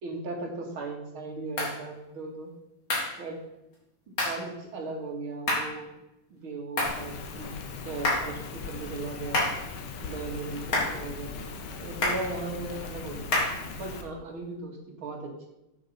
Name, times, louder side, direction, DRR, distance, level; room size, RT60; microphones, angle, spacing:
voice 1, 0.0-2.5 3.2-3.4 4.2-5.9 6.3-7.5 7.8-9.4 10.0-11.4 11.8-13.3 13.8-15.5, right 3 dB, 80° right, 1 dB, 2.9 m, -37 dB
sound 1, 1.6-1.8 2.9-3.2 4.2-4.4 5.5-5.8 6.8-7.0 8.0-8.4 9.3-9.7 10.7-11.0 12.0-12.3 13.3-13.6, left 2 dB, 80° left, 4.0 m, -27 dB
Rain, 6.8-14.0, left 4 dB, 60° left, 1.6 m, -39 dB
8.5 x 8.0 x 5.6 m, 0.89 s
omnidirectional pair, 2.2 m